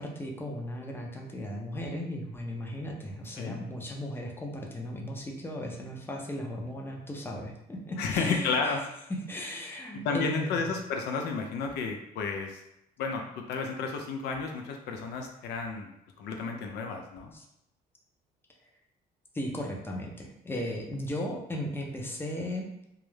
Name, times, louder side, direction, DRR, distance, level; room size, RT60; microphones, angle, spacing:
voice 1, 0.0-8.7 9.1-10.6 17.3-17.4 19.3-22.7, left 1 dB, 15° left, 0 dB, 0.5 m, -36 dB
voice 2, 8.0-8.8 10.0-12.6 13.0-17.3, left 4 dB, 75° left, 3 dB, 0.4 m, -32 dB
2.3 x 2.0 x 3.1 m, 0.82 s
cardioid pair, 110°, 17 cm